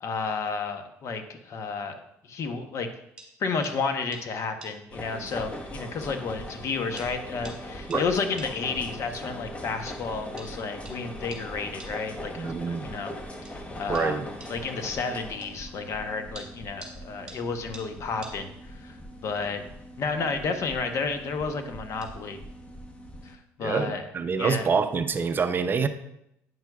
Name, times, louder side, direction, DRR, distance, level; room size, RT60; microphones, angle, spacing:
voice 1, 0.0-2.9 3.4-13.1 13.8-19.0 19.2-19.6 20.0-22.4 23.2-24.0 24.4-24.7, left 4 dB, 50° left, 7 dB, 0.8 m, -31 dB
sound 1, 3.2-3.3 3.6-3.8 4.1-4.2 4.6-4.7 5.7-5.8 6.5-6.6 7.0-7.1 7.4-7.6 7.9-8.0 8.4-8.5 9.9-10.0 10.4-10.5 10.8-11.0 11.3-11.4 11.8-11.9 13.4-13.6 13.9-14.1 14.4-14.5 14.9-15.1 15.4-15.5 16.3-17.0 17.3-17.4 17.7-17.9 18.2-18.4 20.0-20.3 20.5-20.9 22.0-22.1, right 2 dB, 15° right, 2.4 m, -45 dB
sound 2, 4.9-23.4, left 1 dB, 20° left, 0.9 m, -40 dB
voice 2, 12.4-12.9 13.9-14.3 23.6-25.9, right 5 dB, 35° right, 10 dB, 0.5 m, -26 dB
9.3 x 5.9 x 2.3 m, 0.80 s
supercardioid pair, 90°, 6 cm